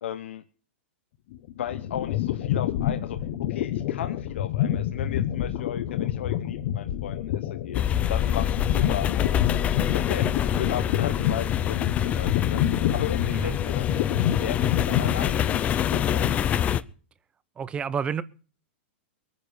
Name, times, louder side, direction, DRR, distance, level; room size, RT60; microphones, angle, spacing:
voice 1, 0.0-0.4 1.5-3.2 3.5-7.8 8.1-9.1 9.9-12.6 12.9-13.9 14.1-16.4, left 10 dB, 80° left, 1.2 m, -35 dB
sound 1, 1.3-16.8, left 11 dB, 55° left, 1.3 m, -28 dB
sound 2, 7.7-16.8, left 10 dB, 20° left, 0.7 m, -26 dB
voice 2, 13.3-13.6 17.6-18.2, right 7 dB, 15° right, 0.8 m, -30 dB
22.0 x 9.7 x 5.3 m
hypercardioid pair, 145°, 6 cm